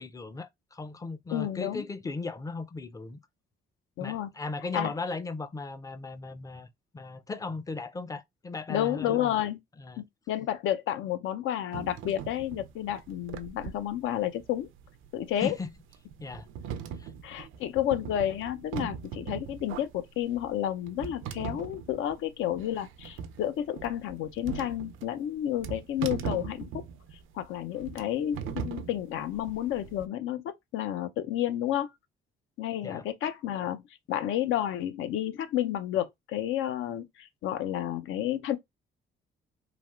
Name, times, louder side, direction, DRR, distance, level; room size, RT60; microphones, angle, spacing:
voice 1, 0.0-3.2 4.0-6.7 6.9-9.3 9.8-10.0 15.4-15.7 16.2-16.5 17.0-17.1 32.8-33.0, left 3 dB, 15° left, 0.4 m, -37 dB
voice 2, 1.3-1.8 4.0-4.3 4.7-4.9 8.7-9.6 10.0-14.7 15.1-15.6 17.2-26.8 27.3-31.9 32.6-33.8 34.1-38.6, left 11 dB, 80° left, 0.5 m, -31 dB
sound 1, 11.7-30.0, right 7 dB, 80° right, 0.5 m, -40 dB
3.3 x 2.4 x 2.3 m
cardioid pair, 90°, 20 cm